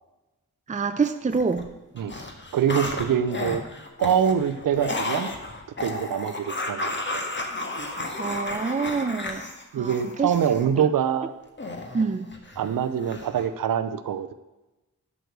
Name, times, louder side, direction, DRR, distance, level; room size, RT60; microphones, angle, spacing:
voice 1, 0.7-1.7 8.2-9.4 9.8-9.9 10.2-10.3 11.9-12.3, right 4 dB, 25° right, 9 dB, 0.5 m, -26 dB
sound 1, 1.0-1.7 2.0-10.7 11.6-12.7 13.0-13.5, left 2 dB, 35° left, 1.5 m, -33 dB
voice 2, 2.5-3.6 4.0-5.3 5.8-7.2 9.7-11.3 12.6-14.3, right 8 dB, 85° right, 12 dB, 0.6 m, -24 dB
9.2 x 6.4 x 6.6 m, 1.1 s
cardioid pair, 60°, 33 cm